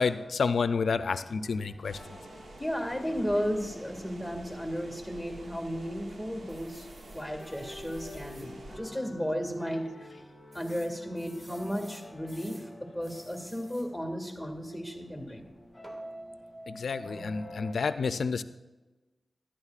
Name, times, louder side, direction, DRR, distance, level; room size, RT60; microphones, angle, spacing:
voice 1, 0.0-2.2 8.0-8.2 16.7-18.4, left 5 dB, 80° left, 12 dB, 0.4 m, -30 dB
sound 1, 1.3-17.7, equal, 10° left, 1.7 m, -49 dB
sound 2, 1.8-8.8, right 2 dB, 75° right, 1.1 m, -48 dB
voice 2, 2.6-6.9 7.1-10.2 10.5-15.5, equal, 5° right, 3 dB, 2.1 m, -34 dB
sound 3, 6.5-8.5 9.0-9.1 9.4-9.5 10.5-12.7 13.0-13.9 15.8-16.1, equal, 20° right, 1.8 m, -55 dB
13.0 x 10.0 x 2.4 m, 1.1 s
cardioid pair, 45°, 0 cm